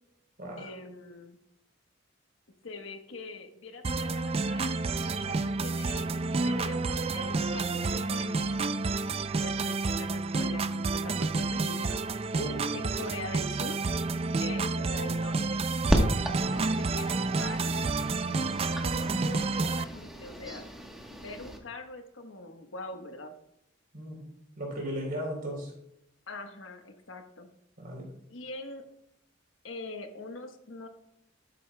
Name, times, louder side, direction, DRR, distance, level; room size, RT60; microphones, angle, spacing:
voice 1, 0.6-1.4 2.6-4.7 5.0-8.4 9.3-12.0 12.7-13.8 14.4-15.6 16.3-17.7 18.6-20.7 21.1-23.3 26.3-27.5 28.3-28.8 29.6-30.9, left 2 dB, 80° left, 6 dB, 1.1 m, -43 dB
sound 1, 3.8-19.8, right 3 dB, 30° right, 0.4 m, -30 dB
voice 2, 12.3-12.6 16.4-16.6 23.9-24.2 24.6-25.7 27.8-28.1, equal, 50° right, 0 dB, 3.5 m, -36 dB
sound 2, 15.9-21.6, equal, ahead, 1.1 m, -33 dB
12.0 x 9.3 x 2.2 m, 0.78 s
head